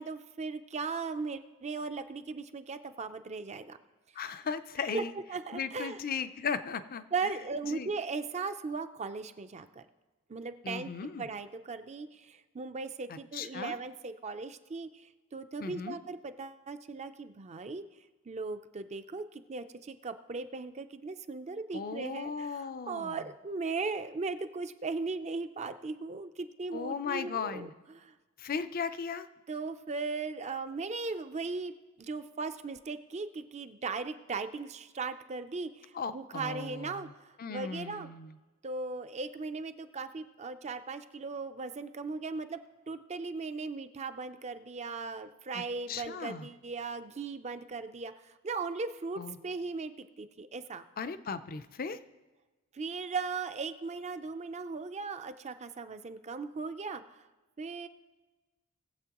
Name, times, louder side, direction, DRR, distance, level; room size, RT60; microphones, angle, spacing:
voice 1, 0.0-3.8 4.9-5.0 5.3-6.0 7.1-9.8 10.3-17.8 18.3-28.1 29.5-38.1 38.6-42.6 42.9-49.9 50.2-50.8 52.7-57.2 57.6-57.9, right 4 dB, 30° right, 10 dB, 0.5 m, -38 dB
voice 2, 4.2-5.1 5.5-7.0 7.7-7.9 10.6-11.3 13.1-13.8 15.6-16.0 21.7-23.2 26.7-27.7 28.4-29.3 35.9-37.1 37.4-38.4 45.5-45.6 45.9-46.5 49.2-49.4 51.0-52.0, left 5 dB, 40° left, 12 dB, 0.5 m, -37 dB
20.0 x 7.7 x 3.0 m, 1.3 s
head